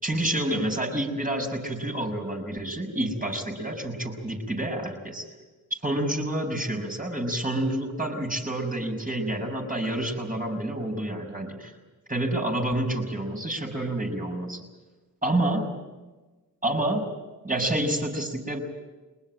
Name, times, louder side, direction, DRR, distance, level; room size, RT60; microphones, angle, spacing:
voice 1, 0.0-5.3 5.7-11.7 12.1-14.6 15.2-15.8 16.6-17.1 17.4-18.6, right 1 dB, 20° right, 3 dB, 6.2 m, -28 dB
21.5 x 20.5 x 9.0 m, 1.2 s
supercardioid pair, 45°, 39 cm